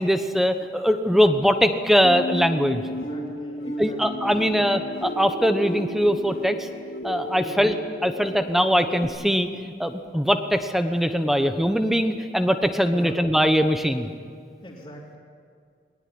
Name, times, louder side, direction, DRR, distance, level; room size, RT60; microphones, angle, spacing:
voice 1, 0.0-2.8 3.7-6.7 7.0-7.8 8.0-9.5 9.8-14.1, equal, ahead, 8 dB, 1.0 m, -21 dB
sound 1, 2.0-9.1, left 1 dB, 75° left, 3.6 m, -34 dB
voice 2, 2.9-4.9 7.4-7.7 12.8-13.2 14.6-15.2, equal, 25° left, -7 dB, 3.0 m, -43 dB
21.0 x 19.0 x 9.8 m, 2.2 s
head